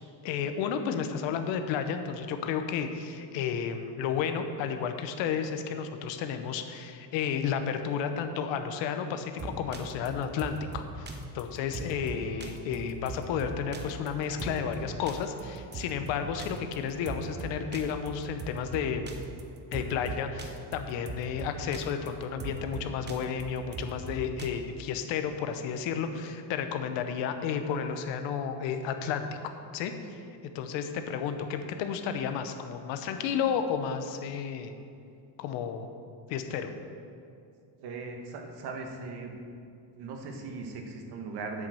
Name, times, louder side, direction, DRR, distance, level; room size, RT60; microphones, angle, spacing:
voice 1, 0.2-19.1 19.7-30.2 30.5-34.7 35.4-35.9 36.3-36.7, left 7 dB, 85° left, 7 dB, 1.0 m, -32 dB
sound 1, 9.4-24.5, right 3 dB, 25° right, 0.8 m, -40 dB
voice 2, 37.8-39.3 39.9-41.7, right 4 dB, 60° right, 3 dB, 1.5 m, -39 dB
8.2 x 7.5 x 6.3 m, 2.4 s
cardioid pair, 135°, 44 cm